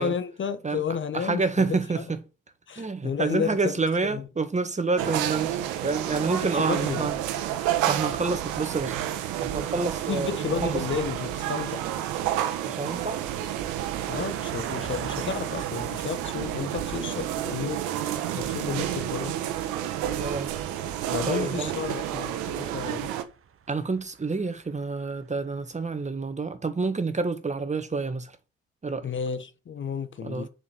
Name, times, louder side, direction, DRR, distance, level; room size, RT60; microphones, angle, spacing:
voice 1, 0.0-1.4 1.7-2.0 2.7-3.7 4.1-4.2 6.6-7.1 10.1-11.8 14.1-19.3 21.1-23.1 29.0-30.5, left 7 dB, 40° left, 1.0 m, -32 dB
voice 2, 1.1-2.2 2.7-7.2 7.6-9.0 9.4-10.8 12.6-13.2 18.3-18.8 20.2-20.5 21.2-21.7 23.7-28.4 28.8-29.1 30.2-30.5, right 4 dB, 25° right, 1.7 m, -28 dB
sound 1, 5.0-23.2, right 11 dB, 70° right, 1.4 m, -30 dB
sound 2, 14.1-25.8 26.1-26.2, right 8 dB, 45° right, 1.3 m, -44 dB
7.1 x 5.2 x 6.4 m
hypercardioid pair, 55°, 31 cm